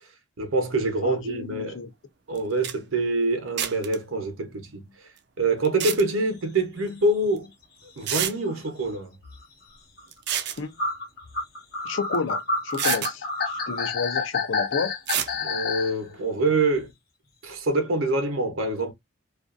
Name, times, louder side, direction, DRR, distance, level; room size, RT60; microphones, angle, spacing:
voice 1, 0.4-1.8 2.3-4.8 5.4-7.5 8.0-9.2 15.4-16.9 17.4-18.9, right 2 dB, 75° right, 0.8 m, -25 dB
voice 2, 1.0-1.9 10.6-10.8 11.8-14.9, left 4 dB, 65° left, 0.5 m, -31 dB
sound 1, 2.3-2.4 2.6-2.7 3.6-4.0 5.6-6.0 7.4-7.5 8.1-8.3 10.1-10.6 12.1-12.2 12.7-13.1 15.1-15.3, right 9 dB, 50° right, 0.4 m, -27 dB
sound 2, 6.9-7.0 7.2-7.4 8.2-8.3 8.5-8.6 9.2-9.4 10.0-10.1 10.8-15.9, left 4 dB, 50° left, 0.9 m, -28 dB
2.4 x 2.3 x 2.4 m
head